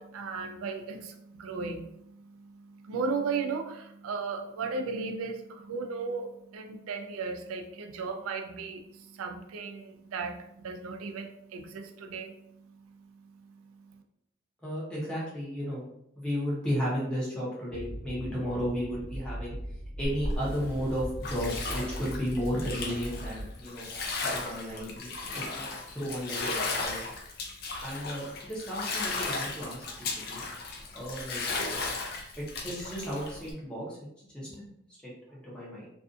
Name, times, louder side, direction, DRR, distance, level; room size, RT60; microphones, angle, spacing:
voice 1, 0.0-14.0, right 4 dB, 85° right, 6 dB, 0.4 m, -36 dB
voice 2, 14.6-15.9 16.2-19.6 20.0-23.9 24.3-25.1 25.4-27.0 27.8-30.4 30.9-31.8 32.4-34.0 34.3-34.6 35.0-35.9, equal, 5° left, -7 dB, 0.7 m, -34 dB
sound 1, 17.7-23.5, right 1 dB, 85° left, 1.0 m, -40 dB
Bathtub (filling or washing), 20.0-33.5, left 3 dB, 45° left, 0.4 m, -35 dB
2.5 x 2.4 x 2.4 m, 0.77 s
head